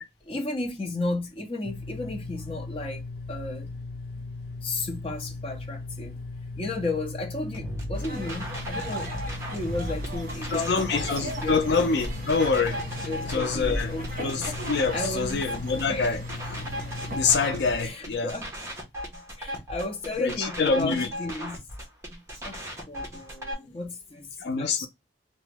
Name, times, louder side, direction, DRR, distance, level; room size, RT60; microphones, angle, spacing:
voice 1, 0.0-3.7 4.6-6.2 6.6-9.1 9.5-11.1 11.4-11.5 13.0-14.5 14.9-15.4 15.9-16.2 17.8-18.5 19.4-21.6 22.4-22.6 22.9-24.3 24.6-24.9, left 2 dB, 30° left, 0.7 m, -34 dB
sound 1, 1.6-17.9, left 3 dB, 55° left, 1.0 m, -38 dB
sound 2, 7.5-23.5, equal, 15° right, 0.8 m, -37 dB
sound 3, 7.9-17.8, right 1 dB, 45° right, 1.1 m, -37 dB
voice 2, 10.5-12.8 13.3-13.9 14.2-16.2 17.1-18.3 20.2-21.1 24.4-24.9, left 4 dB, 70° left, 0.4 m, -25 dB
2.9 x 2.2 x 3.3 m
head